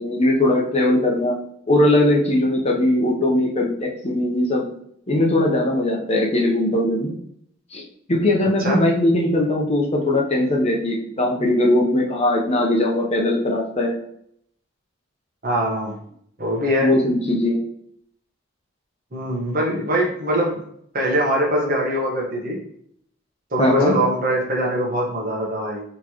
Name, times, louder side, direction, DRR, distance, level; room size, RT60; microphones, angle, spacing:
voice 1, 0.0-1.4 1.7-4.7 5.1-7.1 7.7-7.8 8.1-14.0 16.8-17.6 23.6-24.0, left 1 dB, 30° left, -1 dB, 0.8 m, -20 dB
voice 2, 15.4-16.0 16.4-16.9 19.1-20.6 20.9-22.6 23.5-25.8, equal, 45° right, -2 dB, 1.2 m, -22 dB
4.2 x 3.1 x 2.9 m, 0.68 s
head